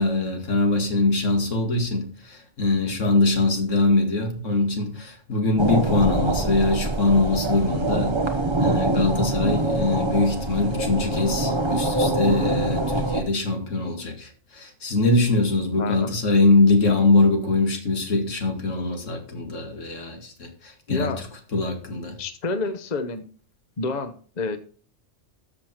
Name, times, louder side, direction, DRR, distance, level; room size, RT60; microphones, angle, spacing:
voice 1, 0.0-8.2 8.6-21.2 21.5-22.2, left 2 dB, 80° left, 2.5 m, -22 dB
sound 1, 5.6-13.2, right 2 dB, 25° right, 1.1 m, -24 dB
voice 2, 15.8-16.1 20.9-21.3 22.2-23.2 23.8-24.6, left 3 dB, 35° left, 1.0 m, -28 dB
13.5 x 6.5 x 4.5 m
omnidirectional pair, 1.3 m